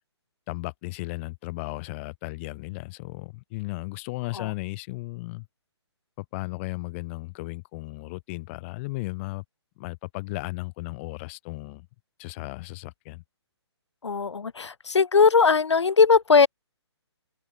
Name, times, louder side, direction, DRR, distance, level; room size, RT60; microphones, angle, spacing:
voice 1, 0.5-5.5 6.2-9.4 9.8-11.9 12.2-13.2, left 24 dB, 25° left, 1.0 m, -35 dB
voice 2, 14.0-16.5, left 5 dB, 75° left, 0.7 m, -19 dB
open air
figure-of-eight pair, 135°, 15 cm